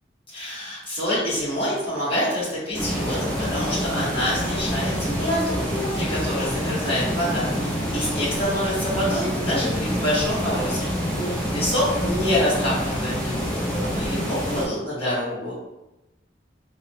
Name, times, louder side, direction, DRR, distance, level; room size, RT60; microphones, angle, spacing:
voice 1, 0.3-10.9 11.2-13.5 13.9-15.5, equal, 30° left, -10 dB, 1.1 m, -26 dB
sound 1, 2.7-14.7, equal, 10° left, 0.5 m, -27 dB
2.9 x 2.1 x 2.6 m, 0.95 s
head